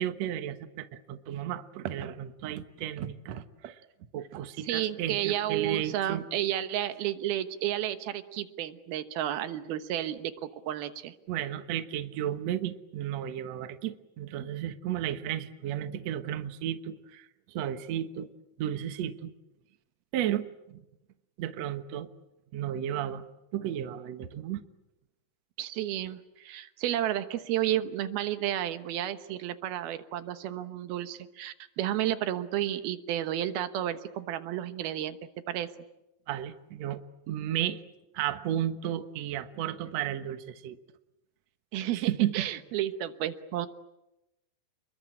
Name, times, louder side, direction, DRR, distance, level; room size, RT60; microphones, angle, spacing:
voice 1, 0.0-3.8 4.1-6.2 11.3-18.3 18.6-19.3 20.1-20.8 21.4-22.1 22.5-23.3 23.5-24.6 36.3-37.0 37.3-37.8 38.1-40.8 41.9-42.5, right 11 dB, 60° right, 9 dB, 2.0 m, -33 dB
voice 2, 4.6-11.2 25.6-35.2 35.5-35.7 41.7-43.7, right 12 dB, 85° right, 10 dB, 3.1 m, -32 dB
29.0 x 21.5 x 8.8 m, 0.93 s
omnidirectional pair, 4.3 m